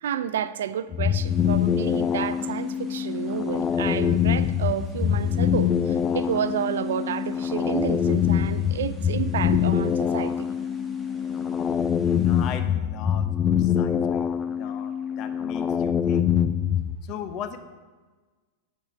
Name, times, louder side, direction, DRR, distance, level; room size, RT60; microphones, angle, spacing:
voice 1, 0.0-10.5, right 9 dB, 75° right, 0.4 m, -30 dB
sound 1, 0.9-17.0, left 8 dB, 30° left, 0.4 m, -24 dB
sound 2, 1.2-12.6, left 6 dB, 5° right, 1.4 m, -41 dB
voice 2, 11.7-14.2 14.6-16.3 17.0-17.6, left 8 dB, 45° left, 0.9 m, -38 dB
7.9 x 4.7 x 6.0 m
hypercardioid pair, 100°, 0 cm